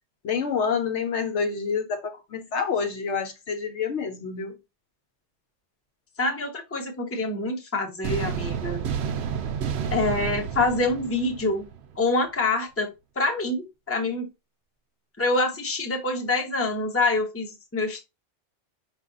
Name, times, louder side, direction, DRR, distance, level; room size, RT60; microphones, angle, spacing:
voice 1, 0.2-4.6, left 6 dB, 70° left, 1.1 m, -28 dB
voice 2, 6.2-8.8 9.9-11.7 12.0-14.3 15.2-18.0, left 2 dB, 15° left, 0.8 m, -26 dB
sound 1, 8.0-12.0, right 7 dB, 70° right, 0.8 m, -30 dB
5.2 x 2.4 x 3.8 m
omnidirectional pair, 1.2 m